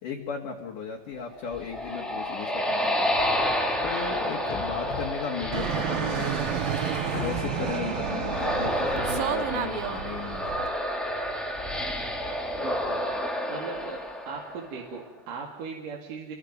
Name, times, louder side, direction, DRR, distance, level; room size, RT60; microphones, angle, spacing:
voice 1, 0.0-3.1 3.8-6.4 7.1-10.5, left 6 dB, 55° left, 0 dB, 2.9 m, -35 dB
sound 1, 1.3-14.9, equal, ahead, 1.0 m, -30 dB
sound 2, 4.5-6.0 6.6-6.7 7.1-8.0, left 8 dB, 75° left, 3.3 m, -38 dB
Fixed-wing aircraft airplane, 5.5-10.7, right 10 dB, 70° right, 2.2 m, -31 dB
voice 2, 12.5-13.0 13.5-14.0 14.3-16.3, right 5 dB, 50° right, 0 dB, 3.4 m, -38 dB
29.0 x 24.0 x 5.3 m, 0.97 s
omnidirectional pair, 5.6 m